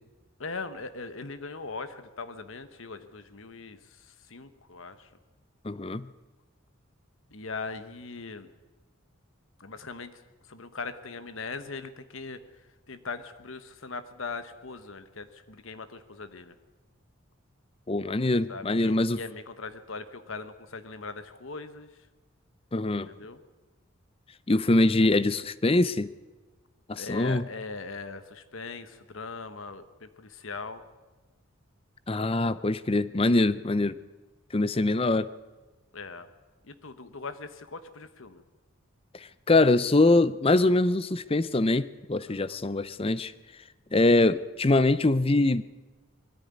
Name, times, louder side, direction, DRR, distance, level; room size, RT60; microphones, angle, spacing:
voice 1, 0.4-5.1 7.3-8.5 9.6-16.5 18.5-22.0 23.1-23.4 26.9-30.8 35.9-36.3 36.6-38.4 42.2-42.6, left 4 dB, 70° left, 11 dB, 1.2 m, -40 dB
voice 2, 5.6-6.1 17.9-19.2 22.7-23.1 24.5-26.1 26.9-27.4 32.1-34.0 34.5-35.3 39.1-43.3 43.9-45.6, left 2 dB, 25° left, 16 dB, 0.6 m, -23 dB
21.0 x 14.5 x 9.6 m, 1.2 s
head